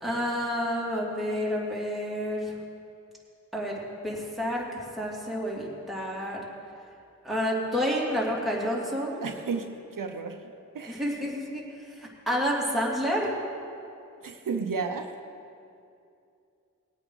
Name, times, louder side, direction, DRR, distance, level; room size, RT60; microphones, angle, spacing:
voice 1, 0.0-2.5 3.5-3.7 4.0-6.4 7.2-9.2 10.9-13.3, equal, ahead, -5 dB, 2.8 m, -29 dB
voice 2, 9.2-10.4 10.7-11.2 14.2-15.1, right 5 dB, 80° right, 5 dB, 0.7 m, -33 dB
18.5 x 8.7 x 3.9 m, 2.5 s
wide cardioid pair, 50°, 32 cm